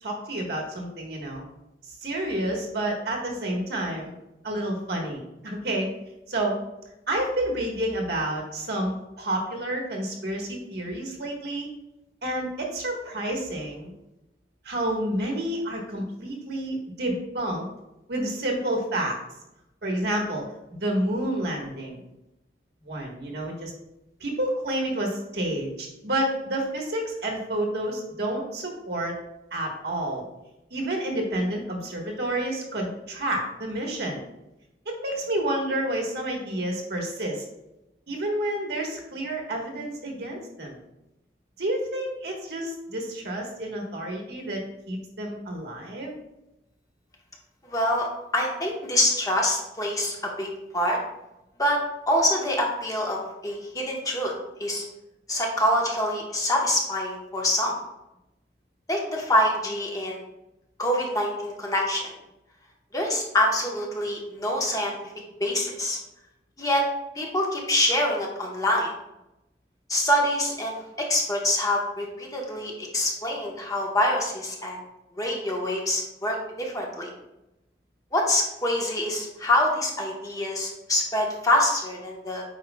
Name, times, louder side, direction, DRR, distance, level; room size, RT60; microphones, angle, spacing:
voice 1, 0.0-1.4 2.0-4.1 4.4-5.9 6.3-6.6 7.1-11.7 12.2-13.9 14.6-17.7 18.1-19.2 19.8-20.4 20.8-22.0 22.8-23.7 24.2-29.1 29.5-30.2 30.7-34.2 34.8-37.4 38.1-40.8 41.6-46.1, right 1 dB, 65° right, 0 dB, 1.4 m, -29 dB
voice 2, 47.7-48.1 48.3-51.0 51.6-51.8 52.1-54.3 54.6-54.8 55.3-57.7 58.9-60.2 60.8-62.1 62.9-64.9 65.4-66.0 66.6-66.8 67.1-68.9 69.9-70.8 71.1-74.8 75.1-77.1 78.1-82.4, left 1 dB, 20° left, -1 dB, 1.1 m, -25 dB
8.3 x 4.9 x 2.3 m, 0.91 s
head